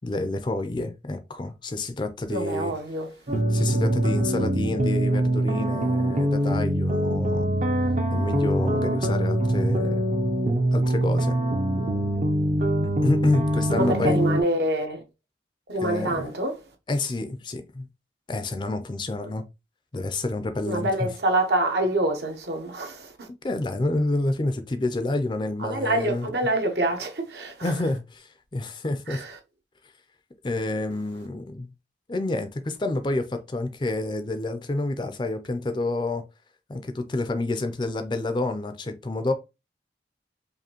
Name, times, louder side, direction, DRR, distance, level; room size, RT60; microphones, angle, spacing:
voice 1, 0.0-2.7 3.5-7.5 8.1-10.0 10.7-11.3 12.8-14.2 15.8-16.3 16.9-17.9 18.3-19.5 19.9-21.1 23.4-26.3 27.6-29.2 30.4-31.7 32.1-36.2 36.7-39.3, left 2 dB, 25° left, 0.4 m, -28 dB
voice 2, 2.3-3.1 13.7-15.0 15.7-16.6 20.7-23.3 25.6-27.7 29.1-29.4, right 1 dB, 70° right, 1.0 m, -26 dB
sound 1, 3.3-14.4, right 1 dB, 40° right, 0.6 m, -23 dB
4.9 x 2.6 x 2.9 m
head